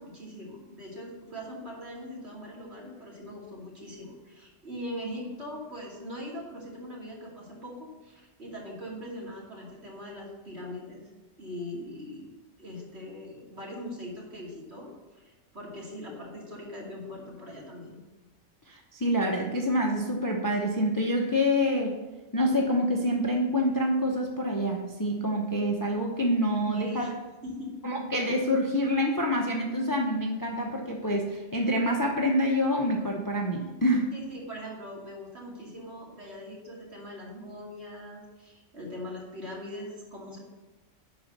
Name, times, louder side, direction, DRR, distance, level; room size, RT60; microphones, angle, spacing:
voice 1, 0.0-11.0 11.4-12.3 12.6-18.0 26.7-27.1 27.4-27.8 34.1-40.4, left 1 dB, 50° right, -4 dB, 2.9 m, -41 dB
voice 2, 18.7-22.0 22.3-27.1 27.8-34.1, equal, 15° left, 1 dB, 0.8 m, -26 dB
11.5 x 4.7 x 6.6 m, 1.2 s
omnidirectional pair, 1.4 m